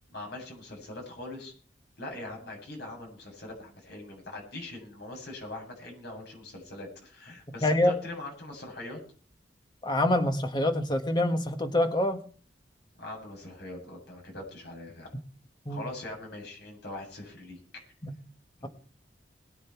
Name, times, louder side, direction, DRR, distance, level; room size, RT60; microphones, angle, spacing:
voice 1, 0.1-1.5 2.0-9.0 13.0-15.1 15.7-17.6 18.6-18.7, left 2 dB, 65° left, 1 dB, 7.6 m, -42 dB
voice 2, 7.6-7.9 9.8-12.2 15.7-15.9 18.0-18.1, left 1 dB, 25° left, 6 dB, 1.7 m, -25 dB
22.0 x 9.4 x 4.7 m, 0.42 s
head